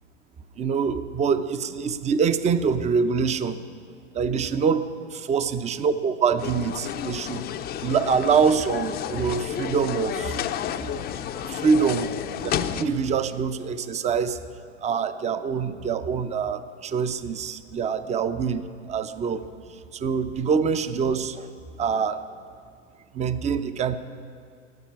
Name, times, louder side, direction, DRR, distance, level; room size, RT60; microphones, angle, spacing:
voice 1, 0.6-3.6 4.1-7.5 7.8-10.4 11.4-12.1 12.4-14.4 14.8-21.5 21.8-22.2 23.1-24.0, right 6 dB, 20° right, 12 dB, 0.6 m, -25 dB
sound 1, 6.4-12.8, left 10 dB, 25° left, 0.5 m, -31 dB
14.5 x 8.5 x 9.2 m, 2.3 s
hypercardioid pair, 110°, 38 cm